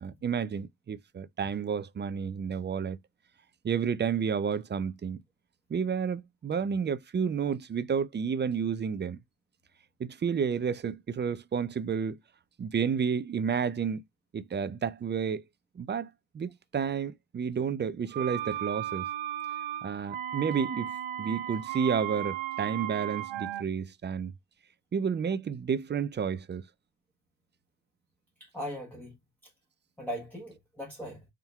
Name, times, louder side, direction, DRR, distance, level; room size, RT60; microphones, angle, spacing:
voice 1, 0.0-3.0 3.6-5.2 5.7-9.2 10.0-12.2 12.6-14.0 14.3-15.4 15.8-19.1 19.8-20.9 21.2-24.3 24.9-26.6, right 6 dB, 25° right, 0.4 m, -31 dB
sound 1, 18.1-23.6, right 12 dB, 85° right, 0.8 m, -35 dB
voice 2, 28.4-29.2 29.4-29.5 30.0-31.2, equal, 5° left, 1.2 m, -39 dB
4.3 x 3.5 x 2.3 m
cardioid pair, 105°, 44 cm